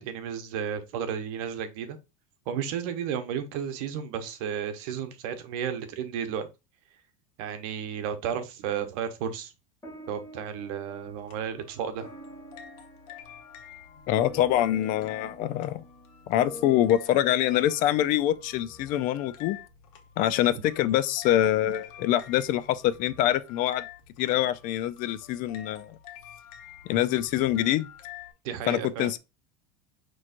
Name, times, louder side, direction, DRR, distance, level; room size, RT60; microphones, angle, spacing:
voice 1, 0.0-2.0 2.5-6.5 7.4-9.5 10.1-12.1 20.5-20.6 28.4-29.1, right 8 dB, 70° right, 0.9 m, -33 dB
sound 1, 9.8-18.5, equal, 15° left, 2.0 m, -47 dB
sound 2, 11.0-28.3, left 10 dB, 75° left, 0.9 m, -48 dB
voice 2, 14.1-15.8 16.3-19.6 20.2-23.8 24.2-26.0 26.9-27.9 28.7-29.2, left 12 dB, 45° left, 0.4 m, -25 dB
5.7 x 3.0 x 2.5 m
supercardioid pair, 135°, 19 cm